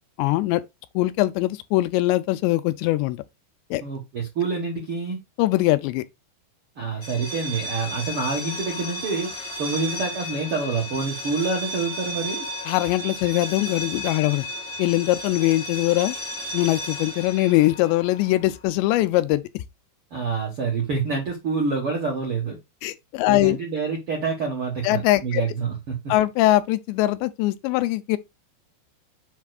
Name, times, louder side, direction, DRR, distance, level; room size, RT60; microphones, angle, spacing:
voice 1, 0.2-0.6 1.0-3.2 3.7-3.8 5.4-6.0 12.7-14.5 14.8-16.2 16.5-19.6 22.8-23.6 24.8-25.4 26.1-28.2, left 17 dB, 90° left, 2.8 m, -22 dB
voice 2, 3.8-5.2 6.8-12.5 20.1-22.6 23.3-25.9, right 4 dB, 70° right, 1.3 m, -27 dB
School Bell, 6.9-18.6, equal, 55° left, 1.2 m, -34 dB
7.3 x 5.9 x 2.4 m
omnidirectional pair, 5.0 m